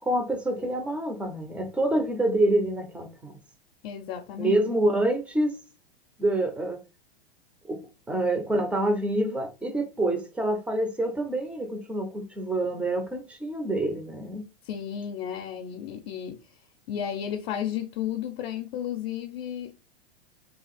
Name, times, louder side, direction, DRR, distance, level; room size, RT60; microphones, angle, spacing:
voice 1, 0.0-3.4 4.4-5.6 6.2-6.8 7.7-7.8 8.1-14.5, right 1 dB, 5° right, 0.4 m, -27 dB
voice 2, 3.8-4.6 14.7-16.4 16.9-19.8, left 9 dB, 50° left, 0.6 m, -33 dB
2.8 x 2.3 x 4.0 m
hypercardioid pair, 125°, 32 cm